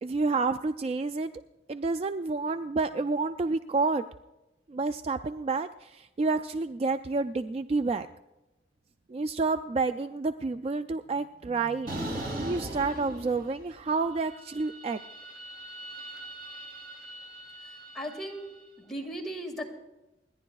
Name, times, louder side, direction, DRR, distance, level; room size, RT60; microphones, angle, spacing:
voice 1, 0.0-1.3 1.7-4.0 4.7-8.1 9.1-11.9 12.4-15.0, right 3 dB, 35° right, 10 dB, 0.3 m, -29 dB
sound 1, 11.9-13.8 14.1-18.5, right 1 dB, 55° right, 3.0 m, -40 dB
voice 2, 17.9-18.5 18.8-19.6, equal, ahead, -2 dB, 2.1 m, -36 dB
29.0 x 10.5 x 2.3 m, 1.0 s
head